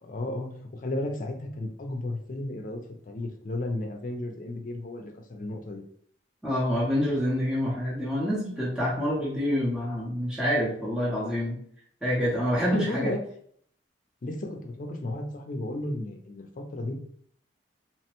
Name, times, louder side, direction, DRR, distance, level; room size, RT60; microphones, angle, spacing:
voice 1, 0.0-2.8 3.1-5.8 12.6-13.2 14.2-16.9, left 1 dB, 50° left, 3 dB, 0.5 m, -34 dB
voice 2, 6.4-11.6 12.0-13.1, equal, 5° right, -8 dB, 0.7 m, -27 dB
3.0 x 2.1 x 2.9 m, 0.63 s
head